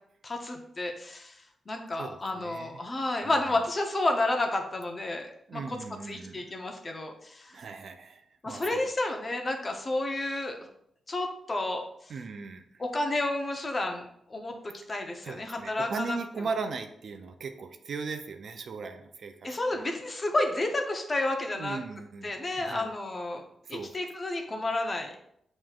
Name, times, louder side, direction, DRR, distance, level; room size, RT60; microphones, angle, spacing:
voice 1, 0.2-1.4 1.7-5.8 6.1-7.6 8.4-10.7 11.1-11.8 12.8-14.5 14.9-16.2 19.4-21.8 22.2-23.4 23.7-25.1, left 2 dB, 35° left, 3 dB, 0.8 m, -31 dB
voice 2, 2.0-2.9 3.2-3.3 5.5-6.5 7.5-8.8 12.1-12.6 15.2-19.8 21.5-22.9 23.6-24.0, right 4 dB, 65° right, 7 dB, 0.5 m, -38 dB
7.2 x 3.1 x 2.4 m, 0.71 s
cardioid pair, 85°, 0 cm